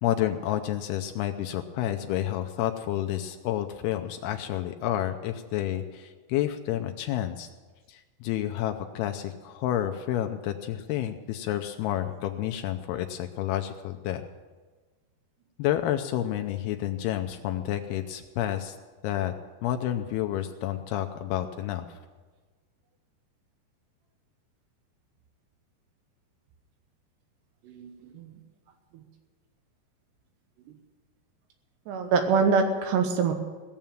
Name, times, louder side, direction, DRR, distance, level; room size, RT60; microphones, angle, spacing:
voice 1, 0.0-7.5 7.9-14.3 15.6-18.8 19.0-19.3 19.6-22.0, left 12 dB, 85° left, 7 dB, 2.5 m, -30 dB
voice 2, 27.6-28.3 28.9-29.0 31.9-33.3, right 5 dB, 80° right, 5 dB, 3.2 m, -25 dB
17.5 x 7.2 x 9.0 m, 1.4 s
omnidirectional pair, 4.7 m